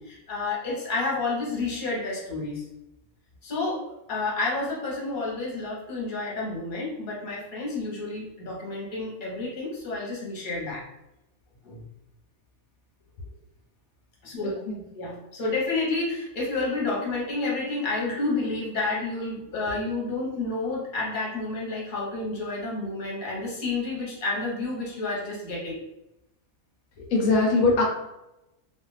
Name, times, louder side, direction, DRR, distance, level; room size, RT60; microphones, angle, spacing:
voice 1, 0.0-2.6 3.4-3.8 4.1-10.8 11.6-11.8 14.2-14.6 14.9-25.8, left 3 dB, 40° left, -4 dB, 1.0 m, -30 dB
voice 2, 14.4-14.8 27.0-27.8, left 3 dB, 80° left, -2 dB, 1.0 m, -22 dB
2.4 x 2.3 x 3.1 m, 0.91 s
omnidirectional pair, 1.4 m